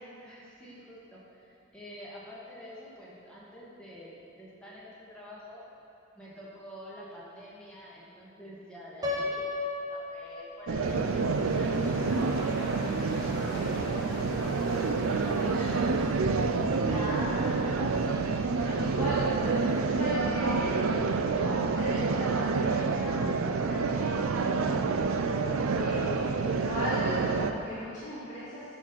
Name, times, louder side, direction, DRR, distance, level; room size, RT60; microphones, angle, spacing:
voice 1, 0.2-4.1 4.4-5.7 6.1-12.9 13.3-16.0, equal, 5° left, -8 dB, 1.9 m, -47 dB
Piano, 9.0-11.0, left 3 dB, 20° right, 1.0 m, -34 dB
sound 1, 10.7-27.5, right 4 dB, 75° right, 0.5 m, -28 dB
sound 2, 10.8-19.8, left 1 dB, 60° left, 1.4 m, -44 dB
voice 2, 16.8-20.7 21.3-24.7 25.4-28.6, equal, 35° left, -11 dB, 1.9 m, -37 dB
11.0 x 4.3 x 5.8 m, 2.9 s
head